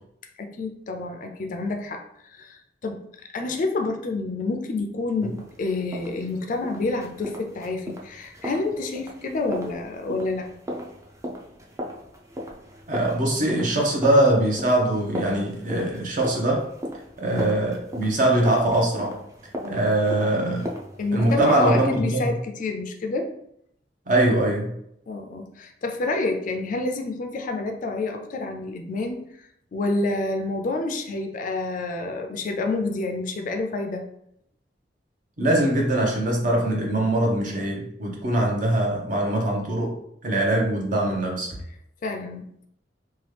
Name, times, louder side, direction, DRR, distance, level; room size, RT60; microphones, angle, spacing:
voice 1, 0.4-2.0 2.3-3.0 3.3-10.5 19.6-19.8 21.0-23.3 25.1-29.3 29.7-34.1 42.0-42.7, left 3 dB, 50° left, 4 dB, 0.4 m, -28 dB
sound 1, 5.2-21.9, equal, 15° right, 0.4 m, -37 dB
voice 2, 12.9-16.6 17.2-19.2 19.7-20.7 21.1-22.3 24.1-24.7 35.4-39.9 40.2-41.5, right 1 dB, 50° right, -1 dB, 0.8 m, -22 dB
2.9 x 2.3 x 3.2 m, 0.73 s
head